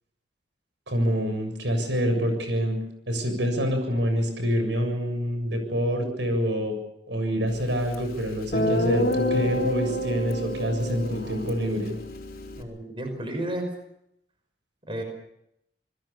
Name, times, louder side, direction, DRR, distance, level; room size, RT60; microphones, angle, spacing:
voice 1, 0.9-2.8 3.1-6.7 7.1-11.9, equal, 85° right, 6 dB, 7.3 m, -26 dB
Guitar, 7.9-8.0 8.5-12.6, left 1 dB, 55° left, 4.3 m, -28 dB
voice 2, 12.6-13.7 14.9-15.0, right 1 dB, 30° right, 6 dB, 5.6 m, -32 dB
28.5 x 21.0 x 7.0 m, 0.78 s
head